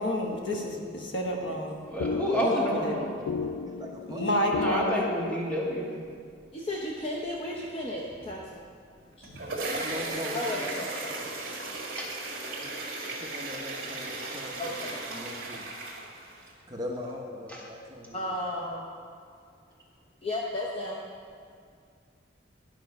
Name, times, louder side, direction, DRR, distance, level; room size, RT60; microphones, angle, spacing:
voice 1, 0.0-1.8 2.4-3.0 4.1-5.1 9.3-9.4, left 1 dB, 65° left, 0 dB, 1.2 m, -29 dB
sound 1, 1.4-5.7, left 4 dB, 85° left, 0.3 m, -35 dB
voice 2, 1.9-3.1 4.5-6.0 12.0-12.1 14.2-14.4 17.5-17.6, equal, 5° left, -4 dB, 1.4 m, -29 dB
voice 3, 2.8-4.6 9.7-11.2 13.0-15.6 16.7-18.3, left 1 dB, 20° right, -1 dB, 0.8 m, -41 dB
voice 4, 6.5-8.6 9.2-9.3 10.3-11.1 12.6-12.7 14.6-15.0 18.1-18.9 20.2-21.0, left 1 dB, 30° left, -3 dB, 0.7 m, -34 dB
sound 2, 9.0-16.5, right 2 dB, 45° right, 1.8 m, -36 dB
11.0 x 5.7 x 5.3 m, 2.2 s
head